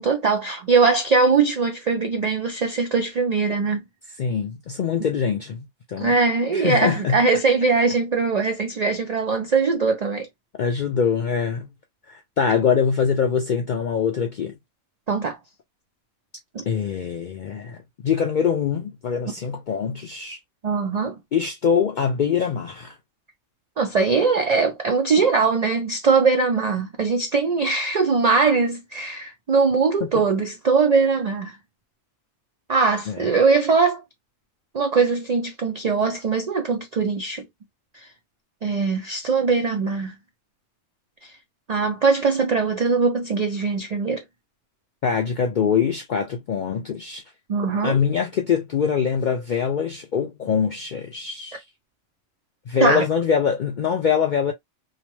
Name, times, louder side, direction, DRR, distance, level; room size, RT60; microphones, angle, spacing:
voice 1, 0.0-3.9 6.0-10.3 15.1-15.4 16.5-16.7 20.6-21.1 23.8-31.6 32.7-34.0 34.7-37.4 38.6-40.2 41.7-44.2 47.5-48.0 52.8-53.0, right 4 dB, 85° right, 0.3 m, -21 dB
voice 2, 4.2-6.1 6.5-7.2 10.5-11.7 12.1-14.5 16.7-20.4 21.3-23.0 30.0-30.1 33.1-33.2 45.0-47.2 47.8-51.6 52.7-54.5, left 7 dB, 75° left, 0.4 m, -23 dB
2.8 x 2.1 x 3.0 m
omnidirectional pair, 1.3 m